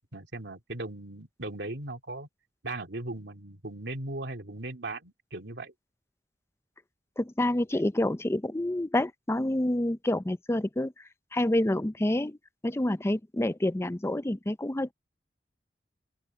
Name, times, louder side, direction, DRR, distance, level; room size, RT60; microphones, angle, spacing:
voice 1, 0.1-2.3 2.6-5.7, right 2 dB, 80° right, 2.4 m, -38 dB
voice 2, 7.2-10.9 11.3-12.4 12.6-14.9, left 1 dB, 15° left, 0.5 m, -28 dB
open air
head